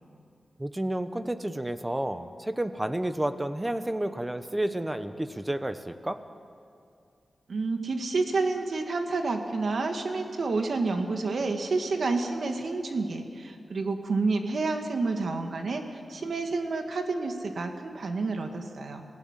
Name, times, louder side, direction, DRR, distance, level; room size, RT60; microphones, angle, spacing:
voice 1, 0.6-6.2, right 1 dB, 15° right, 10 dB, 1.1 m, -31 dB
voice 2, 7.5-19.1, right 3 dB, 65° right, 4 dB, 2.1 m, -29 dB
27.0 x 16.5 x 7.6 m, 2.5 s
wide cardioid pair, 105°, 0 cm